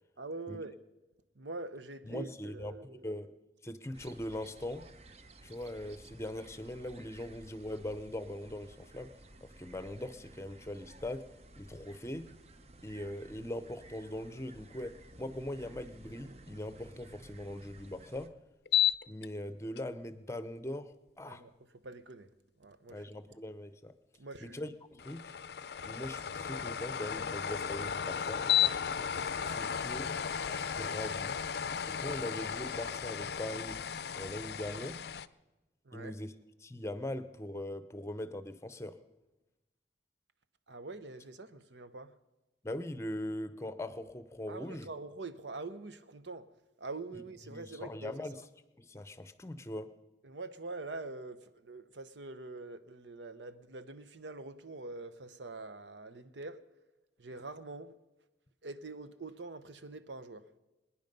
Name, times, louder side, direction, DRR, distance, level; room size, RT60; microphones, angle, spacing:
voice 1, 0.2-0.8 1.4-3.1 21.3-21.5 21.8-22.3 22.6-23.1 24.2-24.6 35.8-36.2 40.7-42.1 44.5-46.5 46.8-48.4 50.2-56.6 57.2-58.0 58.6-60.4, right 3 dB, 90° right, 0.9 m, -44 dB
voice 2, 2.0-3.3 3.6-4.9 5.4-9.1 9.4-11.3 11.6-12.3 12.8-18.3 19.1-21.4 22.9-23.9 24.4-25.4 25.9-28.5 29.4-30.1 30.5-31.4 31.8-33.8 34.1-35.0 35.9-36.3 36.6-39.0 42.6-44.9 47.1-48.4 48.8-49.9, left 1 dB, 15° left, 0.7 m, -41 dB
sound 1, 3.9-18.3, right 2 dB, 35° right, 0.7 m, -55 dB
sound 2, 18.7-19.3 19.8-19.9 25.0-35.3, left 9 dB, 65° left, 0.5 m, -34 dB
25.0 x 10.0 x 5.3 m
head